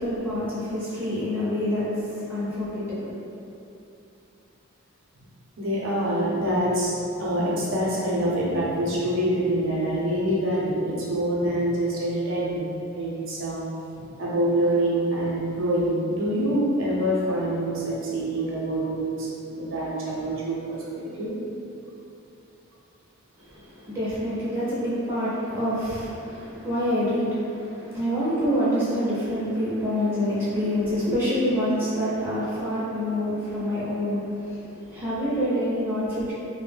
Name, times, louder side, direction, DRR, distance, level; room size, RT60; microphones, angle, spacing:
voice 1, 0.0-3.1 23.4-36.3, equal, 10° right, -10 dB, 0.4 m, -27 dB
voice 2, 5.6-13.6 13.9-21.4, right 1 dB, 65° right, -6 dB, 0.6 m, -26 dB
2.1 x 2.1 x 3.3 m, 2.7 s
head